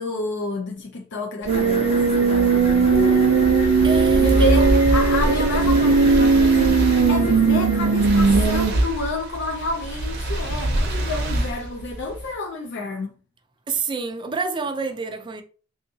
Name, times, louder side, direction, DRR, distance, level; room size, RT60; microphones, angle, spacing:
voice 1, 0.0-3.8 4.1-13.1, left 2 dB, 60° left, 0.5 m, -30 dB
sound 1, 1.4-12.3, right 1 dB, 55° right, 0.7 m, -26 dB
sound 2, 1.5-8.3, left 1 dB, 30° left, 0.9 m, -28 dB
sound 3, 1.5-8.7, right 5 dB, 85° right, 0.4 m, -18 dB
voice 2, 3.8-4.5 13.7-15.4, right 4 dB, 25° right, 0.4 m, -28 dB
3.5 x 2.8 x 2.7 m
head